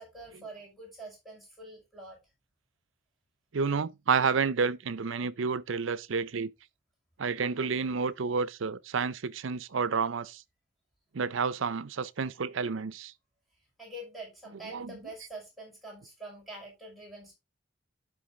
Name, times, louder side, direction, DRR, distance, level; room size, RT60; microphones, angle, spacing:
voice 1, 0.0-2.2 13.8-17.3, right 2 dB, ahead, 5.8 m, -45 dB
voice 2, 3.5-6.5 7.2-10.4 11.1-13.1 14.7-14.9, right 5 dB, 75° right, 0.6 m, -30 dB
11.5 x 5.1 x 3.7 m
head